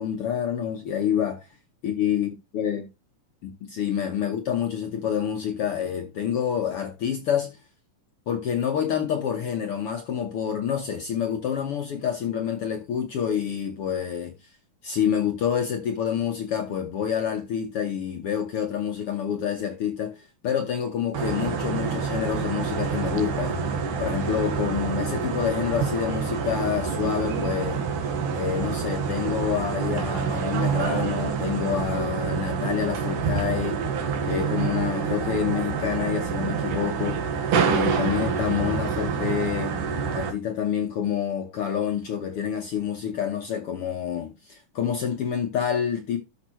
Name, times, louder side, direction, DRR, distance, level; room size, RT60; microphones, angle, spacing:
voice 1, 0.0-1.5 1.8-2.9 3.4-7.6 8.3-14.3 14.8-23.6 24.0-27.8 28.4-33.8 34.3-37.2 37.7-39.8 40.1-46.2, left 8 dB, 70° left, 1.4 m, -27 dB
sound 1, 21.1-40.3, right 6 dB, 75° right, 3.0 m, -27 dB
12.5 x 5.5 x 3.0 m
omnidirectional pair, 3.8 m